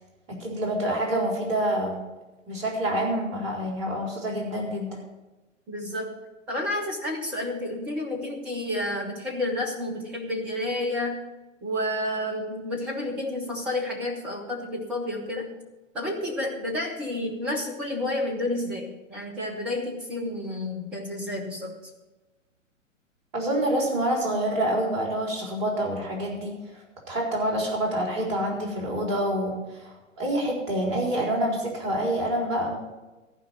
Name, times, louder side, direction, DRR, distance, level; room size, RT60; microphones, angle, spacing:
voice 1, 0.3-2.0 2.5-5.0 23.3-26.6 27.1-32.8, right 1 dB, 45° right, -1 dB, 4.3 m, -27 dB
voice 2, 5.7-6.2 6.5-11.2 11.6-15.5 15.9-21.8, left 1 dB, 5° right, 3 dB, 0.4 m, -30 dB
14.5 x 5.0 x 9.2 m, 1.1 s
figure-of-eight pair, 110°, 39 cm